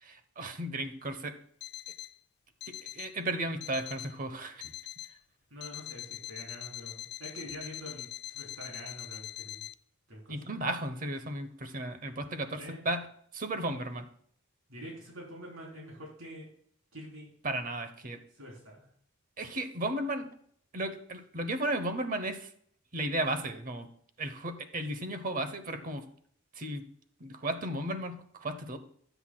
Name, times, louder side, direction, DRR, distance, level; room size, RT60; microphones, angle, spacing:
voice 1, 0.0-1.3 2.7-4.7 10.3-13.1 13.3-14.1 17.4-18.2 19.4-20.3 20.7-22.5 22.9-23.9 24.2-26.0 26.6-26.8 27.2-28.8, right 1 dB, 40° right, 9 dB, 0.9 m, -34 dB
Alarm, 1.6-2.2 2.6-3.2 3.6-4.2 4.6-5.2 5.6-9.7, left 12 dB, 50° left, 0.3 m, -43 dB
voice 2, 5.5-9.6 10.1-10.3 12.5-12.9 14.7-16.5 16.9-17.3 18.3-18.9, equal, 70° right, -2 dB, 3.5 m, -46 dB
18.5 x 7.9 x 2.3 m, 0.63 s
head